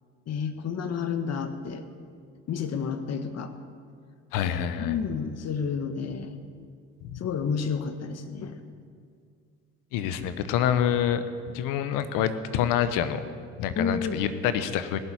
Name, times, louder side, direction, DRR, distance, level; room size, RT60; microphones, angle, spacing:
voice 1, 0.3-1.9 2.5-3.5 4.8-6.4 7.1-8.6 13.7-14.2, left 6 dB, 50° left, 9 dB, 1.6 m, -30 dB
voice 2, 4.3-5.0 7.1-7.2 9.9-11.2 11.5-13.3 13.6-15.0, left 9 dB, 80° left, 12 dB, 1.1 m, -26 dB
18.0 x 7.4 x 9.8 m, 2.1 s
supercardioid pair, 85°, 32 cm